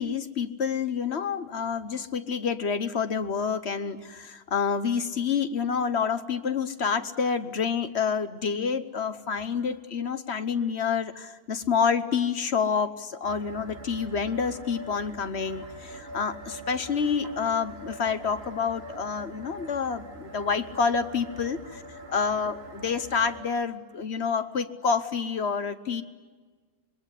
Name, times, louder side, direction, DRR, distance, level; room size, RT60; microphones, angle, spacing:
voice 1, 0.0-21.8 22.1-22.5 22.8-26.0, left 6 dB, 45° left, 11 dB, 1.1 m, -28 dB
sound 1, 13.2-23.4, right 1 dB, 35° right, 2.6 m, -43 dB
26.5 x 22.0 x 9.8 m, 1.4 s
omnidirectional pair, 1.8 m